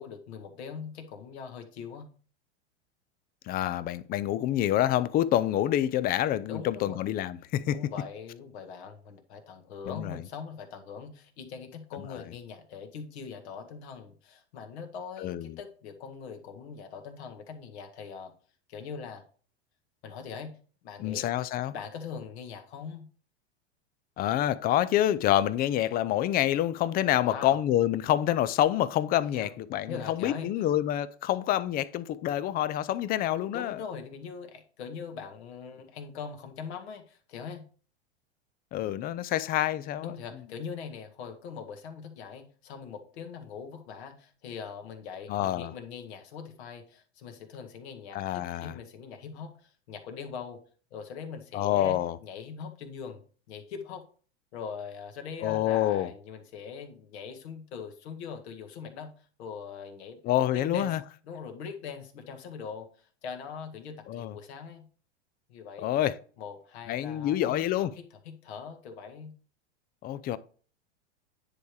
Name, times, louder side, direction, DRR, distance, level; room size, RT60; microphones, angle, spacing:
voice 1, 0.0-2.1 6.5-7.0 7.7-18.3 18.7-19.2 20.0-20.5 20.8-21.3 21.7-23.1 27.2-27.6 29.3-29.5 29.9-30.5 33.5-37.6 40.0-50.6 50.9-53.2 53.5-54.0 54.5-59.1 59.4-60.2 60.5-60.9 61.2-64.9 65.5-65.9 66.4-69.3, left 6 dB, 70° left, 1.7 m, -41 dB
voice 2, 3.5-7.8 9.9-10.2 12.1-12.2 15.2-15.6 21.0-21.7 24.2-33.8 38.7-40.1 45.3-45.7 48.1-48.8 51.5-52.2 55.4-56.1 60.2-61.0 64.1-64.3 65.8-66.2 66.9-67.9 70.0-70.4, left 12 dB, 30° left, 0.4 m, -27 dB
9.7 x 3.4 x 4.7 m
hypercardioid pair, 110°, 34 cm